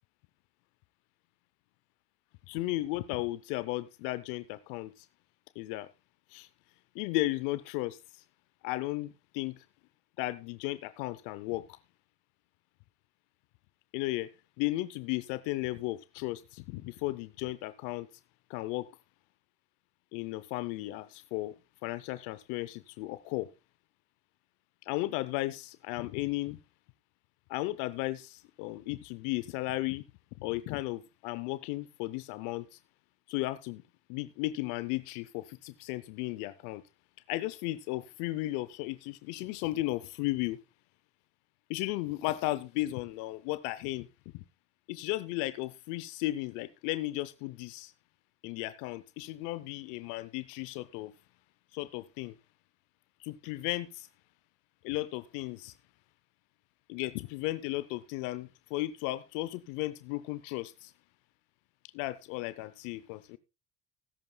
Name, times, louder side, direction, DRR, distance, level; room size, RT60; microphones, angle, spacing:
voice 1, 2.5-5.1 5.6-5.9 6.3-6.5 6.9-8.2 8.6-9.6 10.2-11.8 13.9-14.3 14.6-18.1 18.5-18.9 20.1-21.6 21.8-23.5 24.8-26.6 27.5-30.0 30.4-32.8 33.3-33.8 34.1-36.8 37.3-40.6 41.7-44.1 44.3-44.4 44.9-47.9 48.4-51.1 51.7-52.4 53.2-54.1 54.8-55.7 56.9-60.9 61.9-63.4, left 18 dB, 75° left, 0.6 m, -35 dB
18.5 x 10.5 x 2.2 m
hypercardioid pair, 65°, 31 cm